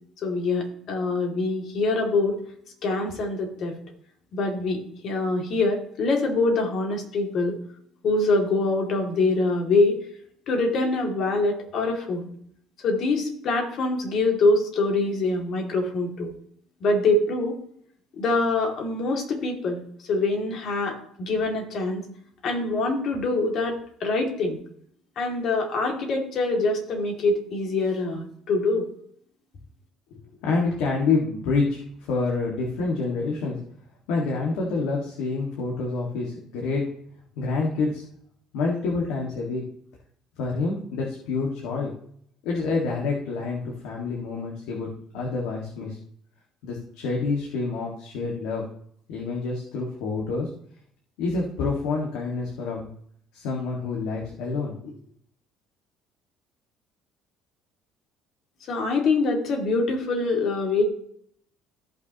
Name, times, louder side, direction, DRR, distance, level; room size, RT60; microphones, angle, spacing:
voice 1, 0.2-2.4 2.8-3.7 4.3-7.6 8.0-10.0 10.5-12.3 12.8-16.3 16.8-17.6 18.1-19.8 20.1-22.0 22.4-24.6 25.2-28.8 58.7-60.8, left 3 dB, 55° left, 2 dB, 2.4 m, -24 dB
voice 2, 30.1-33.6 34.1-36.8 37.4-38.0 38.5-39.6 40.4-41.9 42.4-46.0 46.6-48.6 49.1-50.5 51.2-52.9 53.3-54.9, left 3 dB, 90° left, -2 dB, 1.9 m, -27 dB
15.0 x 5.9 x 3.0 m, 0.65 s
cardioid pair, 125°, 0 cm